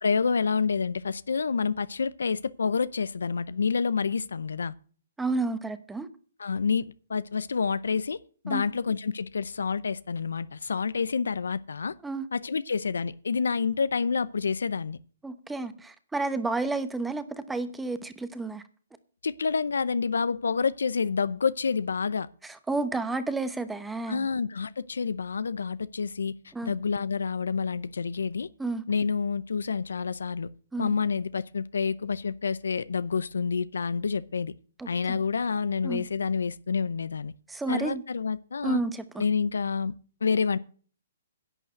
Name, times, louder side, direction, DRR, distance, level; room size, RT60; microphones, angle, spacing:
voice 1, 0.0-4.7 6.4-8.2 8.4-11.9 12.3-15.0 19.2-22.3 24.1-26.3 26.6-28.5 28.9-30.5 30.8-34.5 34.9-37.3 37.7-38.8 39.2-39.9 40.2-40.6, left 5 dB, 85° left, 0.6 m, -28 dB
voice 2, 5.2-6.1 8.5-8.6 12.0-12.3 15.2-18.6 22.4-24.3 26.5-26.7 28.6-28.8 30.7-30.9 34.8-35.2 35.8-36.0 37.5-38.0 38.6-39.2, right 3 dB, 5° right, 0.9 m, -31 dB
11.0 x 6.5 x 9.1 m
hypercardioid pair, 150°, 0 cm